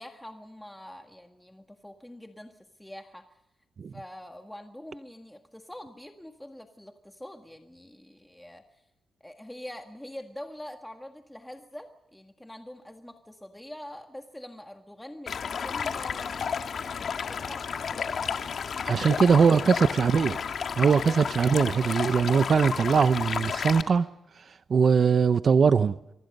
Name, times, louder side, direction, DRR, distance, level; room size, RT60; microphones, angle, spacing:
voice 1, 0.0-3.2 3.9-8.8 9.2-18.3 18.9-19.8 20.8-21.3, left 1 dB, 5° left, 1.7 m, -44 dB
Stream, 15.3-23.8, left 6 dB, 60° left, 1.7 m, -32 dB
voice 2, 18.8-20.4 20.8-24.1 24.7-26.0, right 6 dB, 50° right, 0.7 m, -21 dB
27.5 x 24.0 x 5.4 m
cardioid pair, 110°, 0 cm